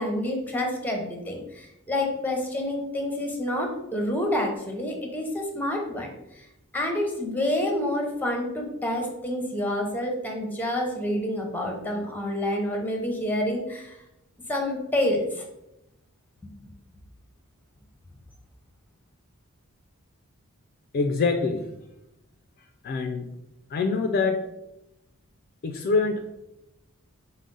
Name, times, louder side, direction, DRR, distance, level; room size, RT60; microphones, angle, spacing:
voice 1, 0.0-6.4 6.7-14.0 14.5-15.4, left 1 dB, 10° left, 2 dB, 0.6 m, -28 dB
voice 2, 20.9-21.6 22.8-23.3 23.7-24.4 25.6-26.3, left 4 dB, 45° left, 5 dB, 0.3 m, -25 dB
4.8 x 2.0 x 3.8 m, 0.88 s
head